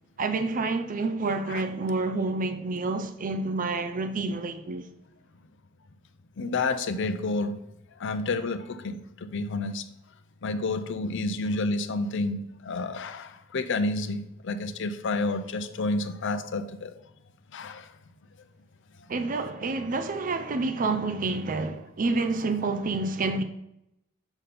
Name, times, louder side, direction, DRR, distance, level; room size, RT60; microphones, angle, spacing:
voice 1, 0.2-4.9 19.1-23.4, right 3 dB, 40° right, 0.5 m, -28 dB
voice 2, 6.4-7.6 8.0-9.8 10.4-16.9 17.5-17.9, left 3 dB, 65° left, 0.6 m, -30 dB
7.2 x 4.2 x 5.0 m
head